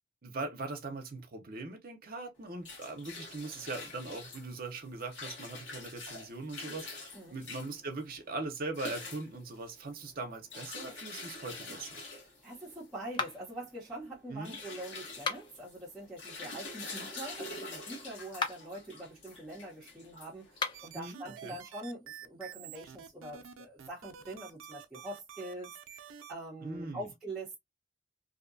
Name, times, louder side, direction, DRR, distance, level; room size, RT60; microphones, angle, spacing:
voice 1, 0.2-12.0 14.3-14.6 20.9-21.6 26.6-27.1, right 3 dB, 45° right, 0.6 m, -41 dB
sound 1, 2.4-20.9, left 3 dB, 70° left, 1.1 m, -46 dB
voice 2, 12.0-27.6, right 1 dB, ahead, 0.8 m, -44 dB
sound 2, 13.1-13.6 15.1-15.7 18.3-18.8 20.5-21.0, left 5 dB, 25° left, 0.3 m, -36 dB
sound 3, 20.7-26.3, right 9 dB, 90° right, 0.4 m, -49 dB
2.6 x 2.1 x 2.5 m
head